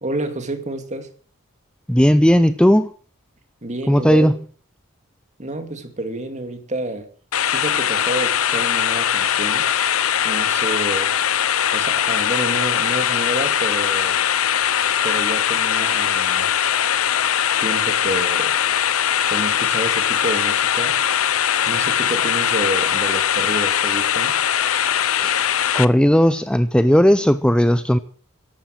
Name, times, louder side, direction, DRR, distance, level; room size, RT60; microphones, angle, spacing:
voice 1, 0.0-1.1 3.6-4.3 5.4-7.1 7.5-9.7 10.2-11.1 11.7-14.2 15.0-16.5 17.6-18.6 19.3-21.0 21.7-24.4, right 2 dB, 35° right, 2.4 m, -29 dB
voice 2, 1.9-2.9 3.9-4.3 25.2-25.4 25.7-28.0, equal, 5° left, 0.6 m, -15 dB
sound 1, 7.3-25.8, left 9 dB, 80° left, 0.8 m, -20 dB
14.5 x 12.0 x 6.5 m
head